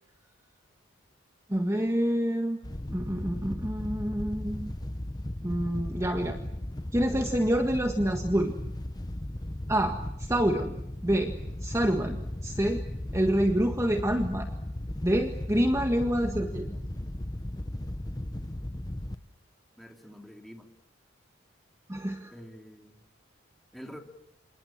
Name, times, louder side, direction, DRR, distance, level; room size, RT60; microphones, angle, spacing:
voice 1, 1.5-2.6 2.9-4.7 5.4-6.4 6.9-8.6 9.7-10.8 11.0-11.3 11.6-12.8 13.1-14.5 15.0-16.7 21.9-22.3, right 1 dB, 15° right, 4 dB, 1.6 m, -27 dB
Wind / Boat Water vehicle, 2.6-19.2, left 1 dB, 20° left, 1.0 m, -36 dB
voice 2, 19.8-20.7 22.3-23.0 23.7-24.0, equal, ahead, 3 dB, 3.1 m, -46 dB
27.5 x 27.5 x 7.5 m, 0.87 s
head